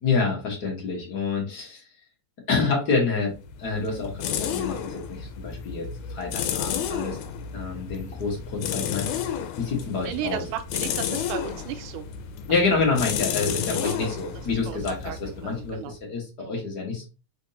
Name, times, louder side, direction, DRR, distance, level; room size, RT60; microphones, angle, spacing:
voice 1, 0.0-1.8 2.5-3.3 3.6-7.2 7.5-9.3 9.6-10.4 12.5-17.1, left 4 dB, 50° left, -1 dB, 1.2 m, -27 dB
sound 1, 3.3-15.9, left 8 dB, 80° left, 2.0 m, -32 dB
voice 2, 10.0-12.1 13.7-14.1 14.5-16.0 16.4-16.6, right 11 dB, 90° right, 8 dB, 2.1 m, -35 dB
5.0 x 3.5 x 2.8 m, 0.31 s
omnidirectional pair, 3.6 m